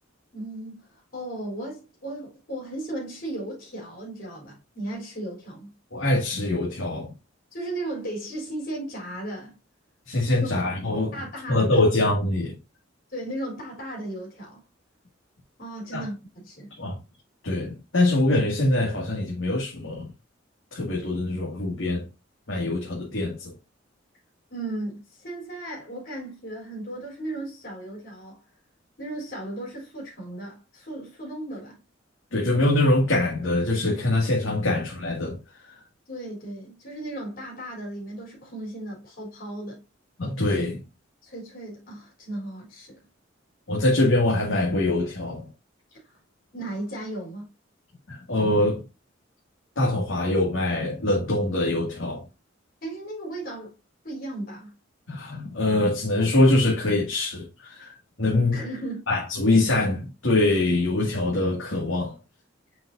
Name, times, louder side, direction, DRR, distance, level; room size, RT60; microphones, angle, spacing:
voice 1, 0.3-5.7 7.5-9.6 10.4-10.5 11.1-11.8 13.1-14.6 15.6-16.7 24.5-28.4 29.0-31.8 36.1-39.8 41.2-43.0 45.9-46.2 46.5-47.5 52.8-53.7 54.0-54.7 58.5-59.0, right 1 dB, 50° left, 3.6 m, -36 dB
voice 2, 5.9-7.1 10.1-11.2 11.5-12.6 15.9-16.0 16.8-17.0 17.4-20.1 20.7-22.1 22.5-23.5 32.3-35.4 35.6-35.7 40.2-40.8 43.7-45.5 48.1-48.8 49.8-52.2 55.1-58.6 59.1-62.2, left 2 dB, 85° left, 2.2 m, -23 dB
7.3 x 5.5 x 2.6 m
head